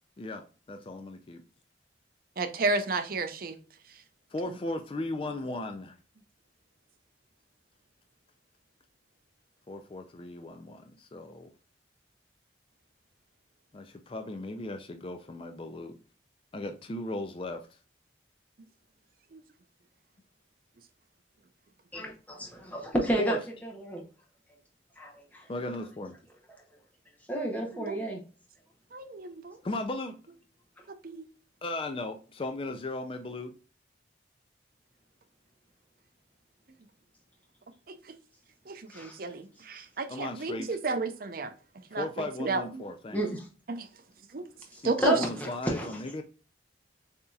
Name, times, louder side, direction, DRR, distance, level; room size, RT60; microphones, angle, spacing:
voice 1, 0.2-1.4 4.3-6.0 9.7-11.5 13.7-16.0 16.5-17.8 23.2-23.4 25.5-26.2 29.6-30.2 31.6-33.5 40.1-40.7 41.9-43.2 44.8-46.2, left 2 dB, 30° left, 0.4 m, -36 dB
voice 2, 2.4-3.6 19.3-19.4 27.7-28.1 28.9-29.6 31.0-31.2 37.9-38.0 38.7-41.5 41.9-42.9 43.7-43.9 44.3-44.4 44.8-45.3, right 3 dB, 50° right, 0.6 m, -32 dB
voice 3, 21.9-23.4 23.6-24.0 25.0-25.4 27.3-28.2 38.9-39.2 43.1-43.4 45.0-45.9, right 1 dB, 10° left, 0.8 m, -31 dB
6.8 x 2.8 x 2.3 m
head